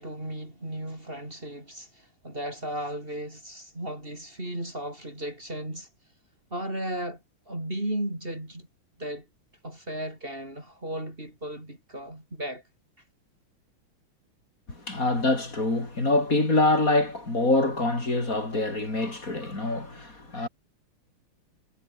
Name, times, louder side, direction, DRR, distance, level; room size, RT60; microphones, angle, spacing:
voice 1, 0.0-5.9 6.5-8.7 9.0-9.3 9.6-12.6, right 1 dB, 25° right, 6.8 m, -35 dB
voice 2, 14.7-20.5, left 2 dB, 40° left, 5.4 m, -25 dB
omnidirectional pair, 2.4 m